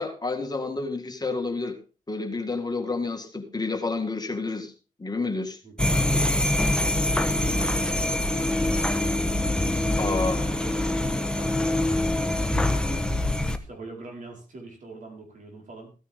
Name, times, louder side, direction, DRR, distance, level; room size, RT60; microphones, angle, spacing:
voice 1, 0.0-1.8 2.1-4.7 5.0-5.6 10.0-10.4, left 3 dB, 25° left, 5 dB, 2.0 m, -29 dB
voice 2, 5.6-9.3 9.8-12.3 12.6-13.1 13.6-15.9, right 2 dB, 60° right, 1 dB, 4.8 m, -43 dB
sound 1, 5.8-13.6, left 1 dB, 5° left, 1.1 m, -24 dB
15.0 x 9.3 x 3.7 m, 0.34 s
cardioid pair, 70°, 15 cm